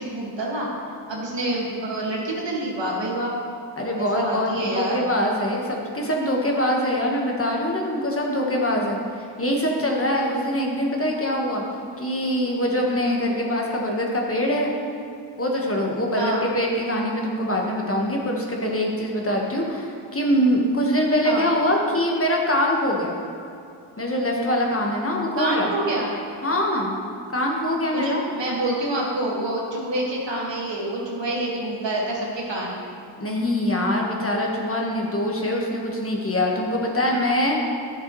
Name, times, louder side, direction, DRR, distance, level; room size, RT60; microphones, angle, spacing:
voice 1, 0.0-3.3 4.0-5.0 16.2-16.4 21.2-21.5 25.4-26.1 27.8-32.8, right 1 dB, 70° right, -3 dB, 1.9 m, -27 dB
voice 2, 3.8-11.6 12.0-14.7 15.4-23.1 24.0-25.7 26.4-26.9 27.3-28.3 33.2-37.6, equal, 30° left, -1 dB, 1.4 m, -23 dB
11.0 x 6.7 x 3.1 m, 2.5 s
cardioid pair, 60°, 45 cm